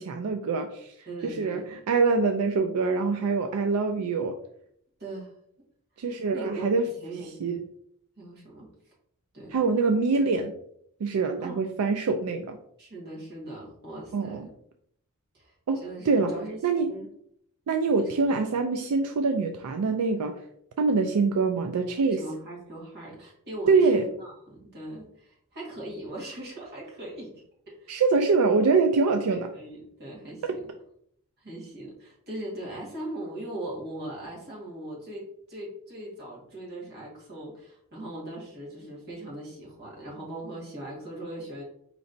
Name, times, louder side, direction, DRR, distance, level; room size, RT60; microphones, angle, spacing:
voice 1, 0.0-0.9 1.4-4.3 6.0-6.9 7.4-7.6 9.5-10.5 11.0-12.6 14.1-14.5 15.7-15.8 16.1-16.3 16.6-16.9 17.7-20.3 20.8-22.2 23.7-24.0 27.9-29.5, right 4 dB, 85° right, 5 dB, 0.4 m, -24 dB
voice 2, 1.0-1.8 5.0-5.3 6.0-7.6 8.2-8.7 9.3-9.6 11.4-11.6 12.8-14.5 15.3-16.6 16.9-17.1 18.0-18.2 22.0-28.0 28.4-28.5 29.3-30.6 31.4-41.6, right 1 dB, 50° right, -4 dB, 1.6 m, -40 dB
4.9 x 3.2 x 2.6 m, 0.70 s
head